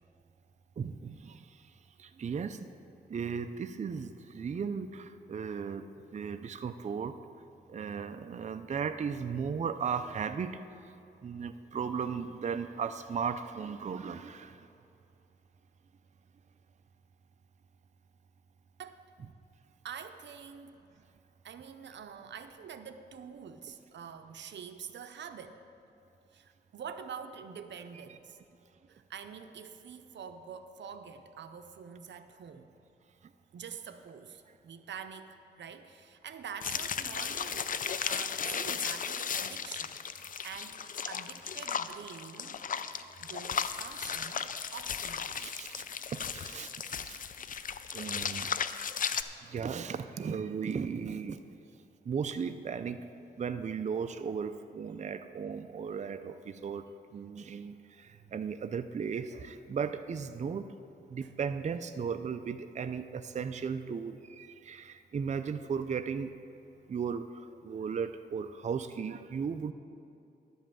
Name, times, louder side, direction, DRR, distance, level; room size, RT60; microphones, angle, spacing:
voice 1, 0.8-1.6 2.0-2.7 3.1-5.8 6.1-7.1 7.7-10.9 11.2-14.7 45.4-45.9 46.3-46.7 47.0-47.2 47.5-48.6 49.1-51.4 52.0-53.0 53.4-56.9 57.1-60.7 61.1-66.3 66.9-69.7, right 6 dB, 40° right, 9 dB, 0.4 m, -36 dB
voice 2, 19.8-20.8 21.4-25.6 26.3-28.4 28.9-32.7 33.5-40.8 41.1-42.6 43.2-44.5 44.7-45.4 58.0-58.3 61.2-61.3, right 7 dB, 85° right, 8 dB, 0.6 m, -46 dB
sound 1, 36.6-49.2, left 7 dB, 50° left, 0.4 m, -36 dB
11.0 x 5.5 x 7.6 m, 2.8 s
wide cardioid pair, 85°, 18 cm